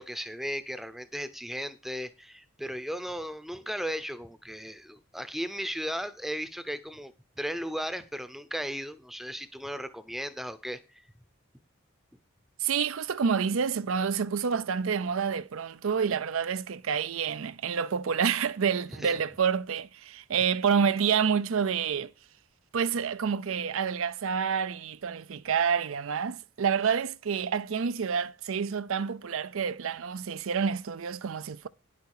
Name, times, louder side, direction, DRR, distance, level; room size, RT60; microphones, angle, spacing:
voice 1, 0.0-11.0 19.0-19.1, equal, ahead, 0.7 m, -36 dB
voice 2, 12.6-22.1 22.7-31.7, right 6 dB, 70° right, 0.5 m, -28 dB
10.5 x 8.4 x 4.8 m
head